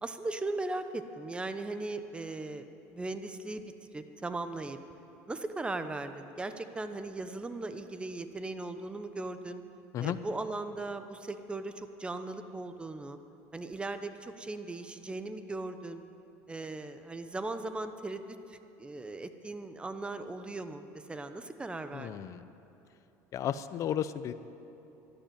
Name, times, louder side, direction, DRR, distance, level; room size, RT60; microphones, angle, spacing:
voice 1, 0.0-4.8 5.3-9.6 10.0-13.2 13.5-16.0 16.5-22.1, right 2 dB, 15° right, 9 dB, 0.9 m, -38 dB
voice 2, 21.9-22.4 23.3-24.3, left 10 dB, 45° left, 13 dB, 0.6 m, -33 dB
12.0 x 12.0 x 9.2 m, 3.0 s
supercardioid pair, 115°, 7 cm